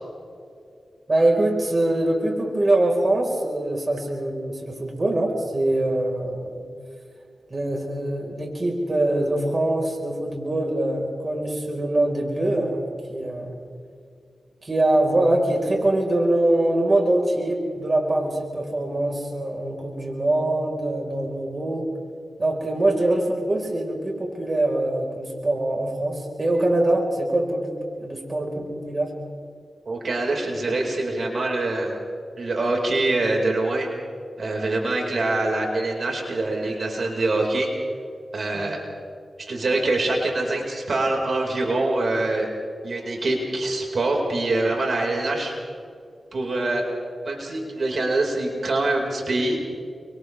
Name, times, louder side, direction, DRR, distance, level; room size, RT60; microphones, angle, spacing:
voice 1, 1.1-6.6 7.5-13.6 14.6-21.9 22.4-27.7 28.0-29.1 38.5-38.7, right 1 dB, 40° right, 0 dB, 4.6 m, -23 dB
voice 2, 29.8-32.0 32.4-33.9 34.4-37.7 38.3-38.8 39.4-42.5 42.8-45.5 46.3-46.9 47.2-49.6, right 2 dB, 65° right, 0 dB, 4.8 m, -24 dB
30.0 x 25.5 x 3.4 m, 2.3 s
cardioid pair, 55°, 0 cm